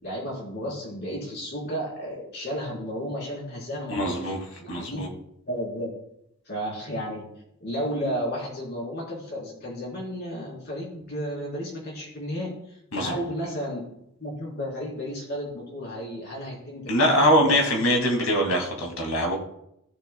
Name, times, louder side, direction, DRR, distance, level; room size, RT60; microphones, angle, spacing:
voice 1, 0.0-5.1 5.5-5.9 6.5-7.2 7.6-13.9 14.2-17.2 17.5-17.6, equal, 50° left, -4 dB, 4.0 m, -33 dB
voice 2, 3.9-4.4 4.7-5.1 12.9-13.1 16.9-19.4, equal, 80° left, 2 dB, 2.4 m, -23 dB
17.0 x 7.0 x 2.3 m, 0.77 s
head